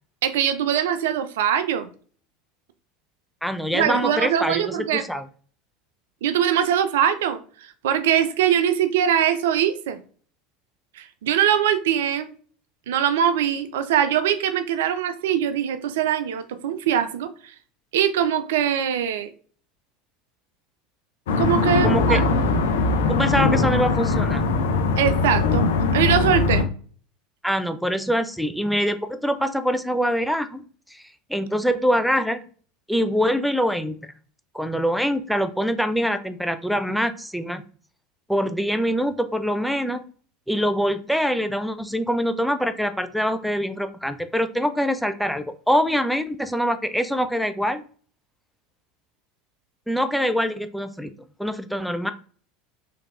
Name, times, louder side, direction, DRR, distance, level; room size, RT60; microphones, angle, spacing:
voice 1, 0.2-1.9 3.7-5.0 6.2-10.0 11.0-12.3 12.9-17.3 17.9-19.3 21.4-22.2 25.0-25.7 25.9-26.7, right 9 dB, 75° right, 11 dB, 0.4 m, -22 dB
voice 2, 3.4-5.2 21.8-22.2 23.1-24.5 27.4-30.6 30.9-31.0 31.3-32.4 32.9-34.0 34.5-37.6 38.3-40.0 40.5-47.8 49.9-51.1 51.4-52.1, equal, ahead, 9 dB, 0.4 m, -24 dB
sound 1, 21.3-26.6, left 3 dB, 75° left, 0.5 m, -21 dB
3.3 x 3.2 x 2.4 m, 0.43 s
hypercardioid pair, 80°, 0 cm